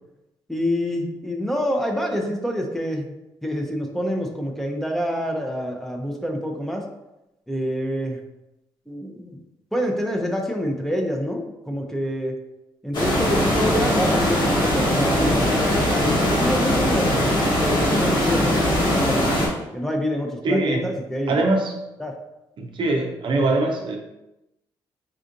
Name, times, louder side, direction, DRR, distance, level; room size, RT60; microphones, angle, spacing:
voice 1, 0.5-3.0 3.4-6.9 7.5-8.2 8.9-9.4 9.7-12.3 12.8-19.3 19.7-21.3 22.0-22.1, equal, 5° left, 1 dB, 0.6 m, -27 dB
sound 1, 12.9-19.5, left 1 dB, 50° left, 1.3 m, -20 dB
voice 2, 20.4-20.9 21.3-21.7 22.6-24.0, right 2 dB, 60° right, 2 dB, 0.6 m, -22 dB
4.5 x 2.4 x 2.6 m, 0.94 s
supercardioid pair, 65°, 10 cm